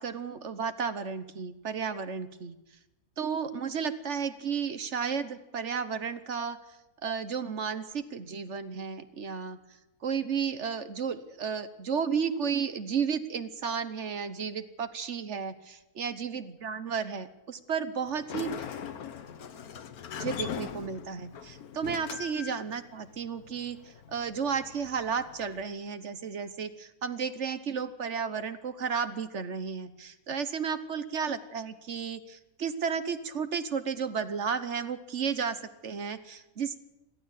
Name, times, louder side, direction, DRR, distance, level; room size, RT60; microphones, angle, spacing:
voice 1, 0.0-2.6 3.2-6.6 7.0-9.6 10.0-18.5 20.2-36.8, right 6 dB, 55° right, 12 dB, 1.3 m, -33 dB
Sliding door, 18.1-25.6, left 8 dB, 75° left, 1.5 m, -41 dB
21.5 x 15.0 x 8.3 m, 0.98 s
omnidirectional pair, 1.6 m